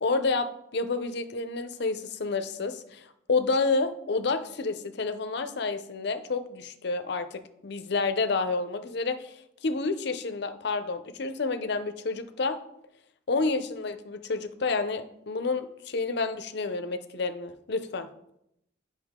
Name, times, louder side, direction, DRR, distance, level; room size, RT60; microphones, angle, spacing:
voice 1, 0.0-9.3 9.6-12.6 13.3-18.1, left 3 dB, 60° left, 10 dB, 0.6 m, -29 dB
8.2 x 5.4 x 3.6 m, 0.77 s
head